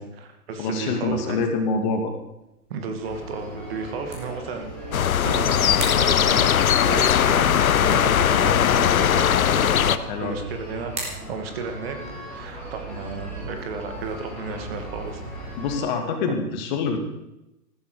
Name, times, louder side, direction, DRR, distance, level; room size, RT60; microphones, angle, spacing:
voice 1, 0.0-1.4 2.7-4.8 5.2-15.3 16.5-16.6, right 5 dB, 40° right, 6 dB, 2.3 m, -33 dB
voice 2, 0.6-2.1 8.3-8.5 10.1-10.4 15.6-17.0, left 4 dB, 30° left, 5 dB, 2.2 m, -26 dB
sound 1, 1.4-15.5, right 2 dB, 15° right, 3.7 m, -44 dB
sound 2, 3.0-15.8, equal, 5° left, 5.8 m, -38 dB
sound 3, 4.9-10.0, left 9 dB, 65° left, 0.9 m, -19 dB
15.0 x 13.5 x 5.1 m, 0.91 s
hypercardioid pair, 145°, 46 cm